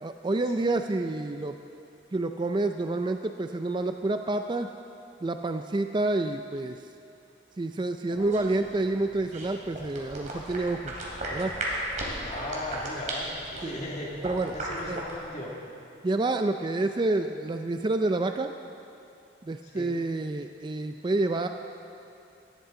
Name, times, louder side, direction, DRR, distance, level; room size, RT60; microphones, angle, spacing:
voice 1, 0.0-1.6 2.1-4.7 5.2-6.8 7.6-10.9 11.3-11.5 13.6-13.8 14.2-14.6 14.9-15.0 16.0-18.5 19.4-21.5, right 2 dB, 25° right, 7 dB, 0.4 m, -28 dB
sound 1, 8.1-15.2, right 1 dB, 45° right, 2.7 m, -36 dB
voice 2, 12.2-14.1 14.5-15.5 19.6-19.9, left 1 dB, 40° left, -3 dB, 2.2 m, -37 dB
18.0 x 13.5 x 3.8 m, 2.7 s
head